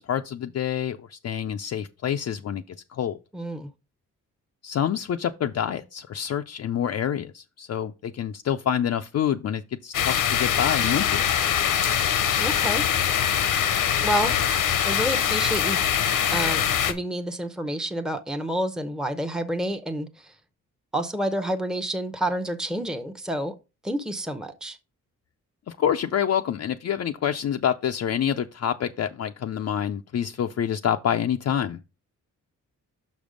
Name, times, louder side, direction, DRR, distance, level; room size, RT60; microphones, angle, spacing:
voice 1, 0.0-2.6 2.9-3.2 4.6-11.2 25.7-31.8, left 9 dB, 55° left, 0.5 m, -27 dB
voice 2, 3.3-3.7 12.4-12.9 14.0-14.4 14.8-15.8 16.3-20.3 20.9-23.5 23.8-24.8, right 1 dB, ahead, 0.8 m, -29 dB
sound 1, 9.9-16.9, left 9 dB, 85° left, 1.0 m, -23 dB
6.0 x 5.2 x 5.1 m
cardioid pair, 85°, 31 cm